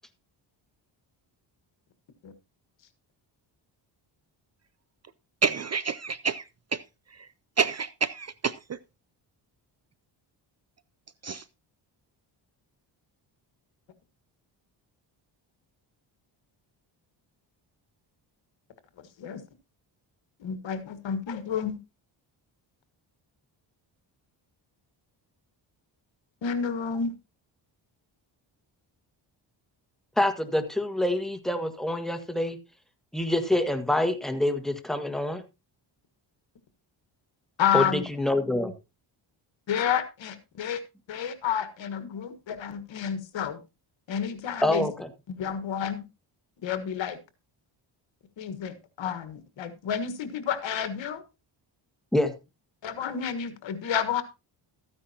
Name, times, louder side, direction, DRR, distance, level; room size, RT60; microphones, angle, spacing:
voice 1, 5.4-6.4 6.7-6.8 7.1-7.3 7.6-8.8 11.2-11.4, right 5 dB, 35° right, 17 dB, 0.5 m, -28 dB
voice 2, 20.4-21.8 26.4-27.1 37.6-38.0 39.7-40.8 41.1-43.6 44.1-44.9 45.3-46.0 46.6-47.2 48.4-51.2 52.8-54.2, left 8 dB, 70° left, 11 dB, 1.6 m, -30 dB
voice 3, 30.2-32.6 33.1-35.4 37.7-37.8 38.2-38.7 44.6-45.1 52.1-52.3, left 1 dB, ahead, 7 dB, 1.6 m, -26 dB
13.5 x 9.7 x 2.8 m, 0.27 s
cardioid pair, 85°, 47 cm